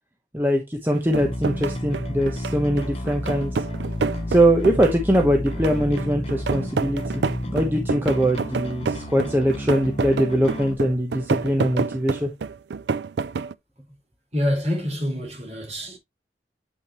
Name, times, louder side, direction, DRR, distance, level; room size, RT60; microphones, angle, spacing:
voice 1, 0.3-3.6 4.3-7.2 7.5-12.3, right 1 dB, 10° right, 1.0 m, -22 dB
sound 1, 0.9-13.5, right 5 dB, 75° right, 0.4 m, -28 dB
Bass guitar, 1.1-10.7, left 1 dB, 35° left, 0.8 m, -32 dB
voice 2, 14.3-16.0, equal, 40° right, 4.8 m, -26 dB
8.6 x 6.0 x 3.1 m
head